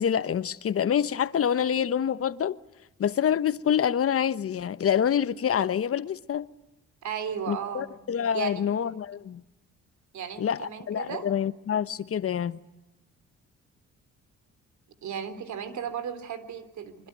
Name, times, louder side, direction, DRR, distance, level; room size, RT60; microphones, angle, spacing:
voice 1, 0.0-2.6 3.0-6.5 7.5-9.4 10.4-12.6, left 8 dB, 50° left, 1.1 m, -26 dB
voice 2, 7.0-7.9 8.3-8.7 10.1-11.3 15.0-17.1, right 8 dB, 70° right, 3.6 m, -35 dB
25.5 x 24.5 x 9.3 m
cardioid pair, 90°, 30 cm